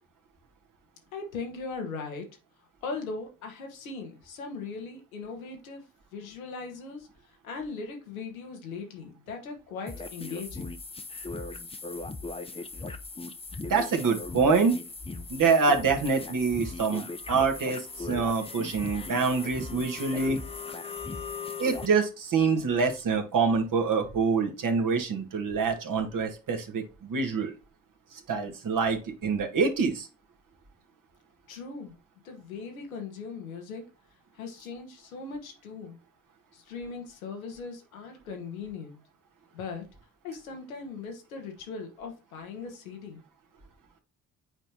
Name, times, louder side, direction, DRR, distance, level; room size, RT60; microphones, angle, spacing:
voice 1, 1.1-2.3 2.8-5.8 6.1-7.1 7.4-10.7 31.5-31.9 32.2-33.8 34.3-36.0 36.5-39.0 39.5-39.8 40.2-43.2, left 4 dB, 85° left, 1.1 m, -39 dB
sound 1, 9.9-21.9, left 3 dB, 15° left, 0.7 m, -38 dB
voice 2, 13.6-14.8 15.3-20.4 21.6-27.5 28.3-30.1, right 5 dB, 50° right, 1.6 m, -26 dB
7.8 x 4.4 x 2.8 m
hypercardioid pair, 45°, 41 cm